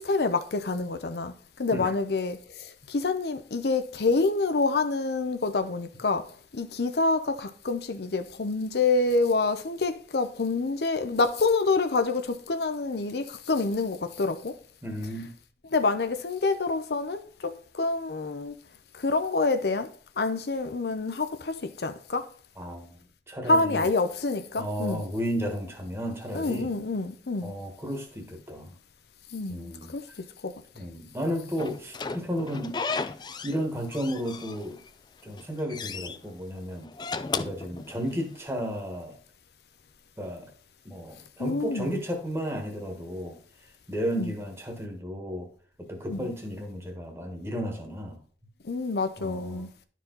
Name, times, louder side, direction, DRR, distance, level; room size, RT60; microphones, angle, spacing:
voice 1, 0.0-14.6 15.7-18.5 18.9-22.3 23.5-25.0 26.3-27.5 29.3-30.5 41.4-42.0 44.1-44.3 46.1-46.3 48.6-49.7, left 3 dB, 65° left, 0.7 m, -27 dB
voice 2, 14.8-15.3 22.6-23.0 23.3-23.9 24.6-26.7 27.4-28.7 29.5-29.9 30.7-32.8 33.4-34.8 35.2-36.9 37.3-39.2 40.2-40.5 40.8-43.4 43.9-45.5 45.8-48.2 49.2-49.7, equal, 15° right, 1.5 m, -33 dB
Slam / Squeak, 31.6-33.6 33.9-34.9 35.3-36.2 36.8-38.4, left 4 dB, 25° left, 0.4 m, -34 dB
11.5 x 4.6 x 3.9 m
head